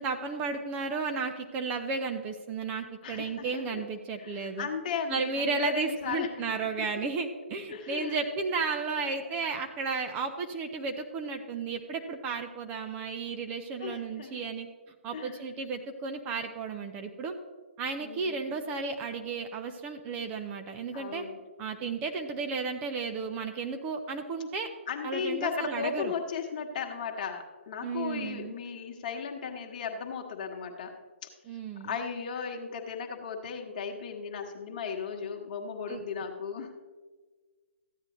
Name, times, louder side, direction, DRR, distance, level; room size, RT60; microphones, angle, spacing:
voice 1, 0.0-4.7 5.1-14.7 15.0-17.4 17.8-21.2 21.6-24.7 25.0-26.1 27.8-28.5 31.5-32.0 35.9-36.0, right 4 dB, 20° right, 5 dB, 0.6 m, -33 dB
voice 2, 3.0-3.8 4.2-6.3 6.8-6.9 7.7-8.2 9.2-9.3 13.8-14.5 15.1-15.4 18.0-18.6 20.9-21.4 24.9-30.9 31.8-36.7, left 6 dB, 40° left, 3 dB, 1.3 m, -36 dB
14.0 x 9.6 x 3.1 m, 1.4 s
figure-of-eight pair, 130°, 7 cm